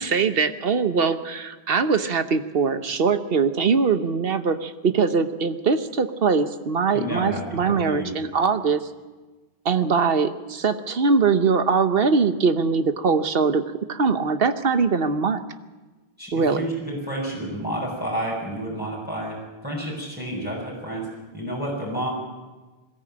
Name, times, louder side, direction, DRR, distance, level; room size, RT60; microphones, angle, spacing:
voice 1, 0.0-8.9 9.6-13.6 13.9-15.4 16.3-16.7, right 5 dB, 65° right, 10 dB, 1.2 m, -22 dB
voice 2, 6.9-8.1 16.2-21.1 21.3-22.1, right 1 dB, 10° right, -4 dB, 5.6 m, -30 dB
21.5 x 14.0 x 8.7 m, 1.3 s
omnidirectional pair, 1.0 m